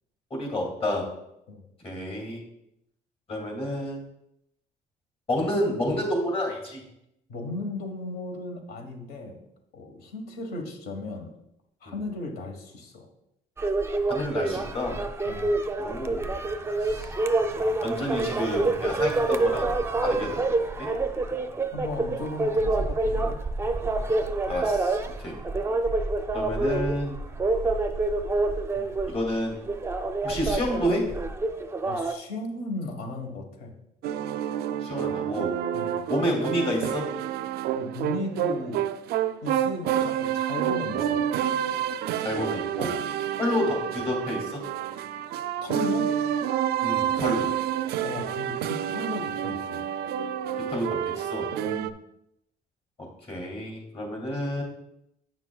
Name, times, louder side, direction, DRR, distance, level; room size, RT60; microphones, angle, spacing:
voice 1, 0.3-1.0 1.8-2.4 3.3-4.0 5.3-6.8 11.8-11.9 14.1-15.0 15.8-16.3 16.8-17.1 17.8-20.4 20.8-20.9 24.5-25.4 26.3-27.2 29.1-29.6 30.2-31.0 34.8-35.5 36.1-37.1 42.2-42.9 43.4-44.6 46.8-47.5 50.7-51.5 53.3-54.6, left 1 dB, 35° left, 1 dB, 2.5 m, -29 dB
voice 2, 7.3-9.4 9.7-11.3 11.8-13.1 15.2-15.5 21.7-23.4 28.7-28.9 31.8-33.7 35.7-36.0 37.8-38.8 39.4-41.3 45.6-46.1 48.0-49.9 51.7-51.9, left 2 dB, 65° left, 4 dB, 1.4 m, -36 dB
sound 1, 13.6-32.1, right 2 dB, 15° right, 0.5 m, -27 dB
sound 2, 34.0-51.9, right 10 dB, 70° right, 0.4 m, -29 dB
9.0 x 6.0 x 2.3 m, 0.81 s
cardioid pair, 110°, 17 cm